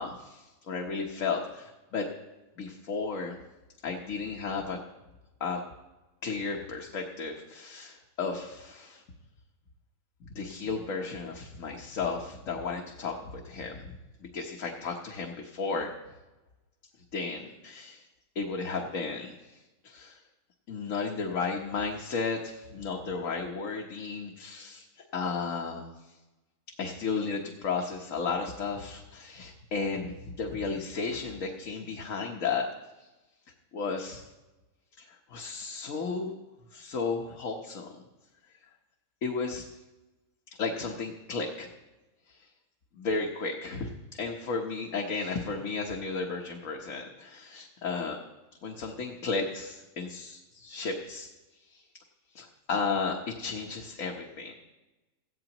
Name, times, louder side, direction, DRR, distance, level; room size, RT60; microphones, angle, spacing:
voice 1, 0.0-2.0 2.6-3.3 3.8-4.8 5.4-5.6 6.2-9.0 10.3-13.9 14.3-15.9 17.1-18.0 18.3-20.2 20.7-24.8 25.1-25.9 26.8-32.7 33.7-34.2 35.0-36.3 36.7-37.9 39.2-39.7 40.6-41.7 42.3-42.4 43.0-43.9 44.2-48.2 48.6-51.3 51.7-51.8 52.3-54.5, left 4 dB, 70° left, 1 dB, 1.5 m, -34 dB
17.5 x 14.5 x 3.0 m, 1.1 s
omnidirectional pair, 1.4 m